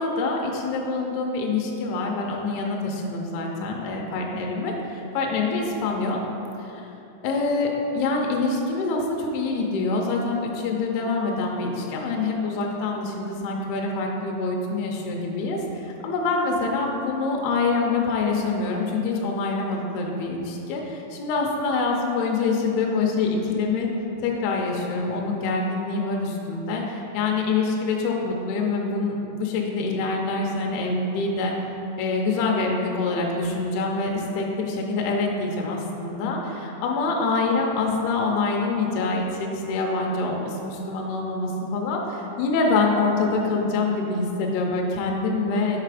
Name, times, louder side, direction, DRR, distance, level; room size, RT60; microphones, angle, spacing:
voice 1, 0.0-6.2 6.6-6.9 7.2-23.9 24.2-31.5 32.0-45.8, left 3 dB, 80° left, 0 dB, 2.3 m, -25 dB
6.6 x 4.0 x 4.8 m, 3.0 s
omnidirectional pair, 5.0 m